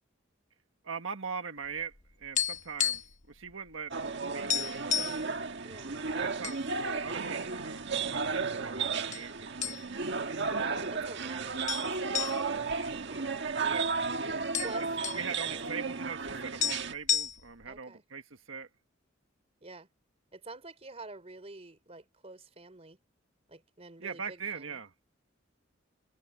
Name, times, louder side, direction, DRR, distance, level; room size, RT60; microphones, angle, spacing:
voice 1, 0.8-3.0 3.3-3.9 4.3-4.9 6.2-9.8 13.6-14.0 14.8-18.7 24.0-24.9, right 5 dB, 90° right, 1.5 m, -41 dB
sound 1, 1.8-3.3 3.5-3.7 4.1-4.2 4.5-5.2 5.9-6.6 7.0-7.1 7.8-8.4 9.1-9.3 9.6-10.1 10.5-10.6 11.7-13.7 14.0-14.1 14.3-15.3 16.3-16.4 16.6-17.7, left 8 dB, 40° left, 0.9 m, -32 dB
sound 2, 3.9-16.9, right 4 dB, 60° right, 1.6 m, -34 dB
voice 2, 10.6-13.0 14.6-15.6 17.7-18.0 19.6-19.9 20.3-23.0 23.5-24.8, right 3 dB, 30° right, 3.7 m, -48 dB
head